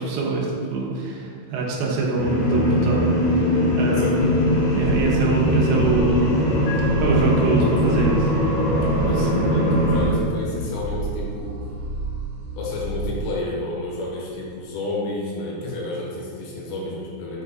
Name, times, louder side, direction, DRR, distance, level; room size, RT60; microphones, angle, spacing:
voice 1, 0.0-3.0 3.8-4.4 4.7-6.5 7.0-8.3 9.1-9.2 9.4-9.6, right 2 dB, 80° right, -3 dB, 3.0 m, -24 dB
sound 1, 2.2-10.1, equal, 55° left, 2.2 m, -21 dB
sound 2, 4.2-13.3, right 2 dB, 60° right, 2.5 m, -31 dB
Piano, 6.7-8.6, left 2 dB, 70° left, 2.8 m, -40 dB
voice 2, 9.0-11.6 12.6-17.4, left 2 dB, 90° left, -3 dB, 3.3 m, -30 dB
6.9 x 3.8 x 3.5 m, 2.2 s
omnidirectional pair, 4.9 m